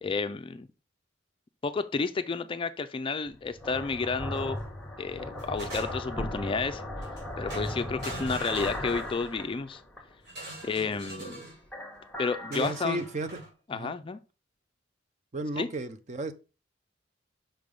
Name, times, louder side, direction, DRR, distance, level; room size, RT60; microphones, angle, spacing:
voice 1, 0.0-0.7 1.6-4.6 5.0-6.8 7.4-9.8 10.6-11.4 12.2-13.0 13.7-14.2 15.6-15.7, left 4 dB, 25° left, 0.3 m, -31 dB
sound 1, 3.3-10.1 10.5-11.3 11.6-13.4, left 1 dB, 5° left, 1.4 m, -37 dB
sound 2, 4.3-4.7 5.1-6.2 7.0-7.2 7.5-9.3 10.3-11.6 12.5-13.5, right 1 dB, 55° right, 4.1 m, -42 dB
voice 2, 12.5-13.3 13.7-13.9 15.3-16.3, right 2 dB, 35° right, 0.6 m, -34 dB
5.7 x 3.4 x 5.3 m
head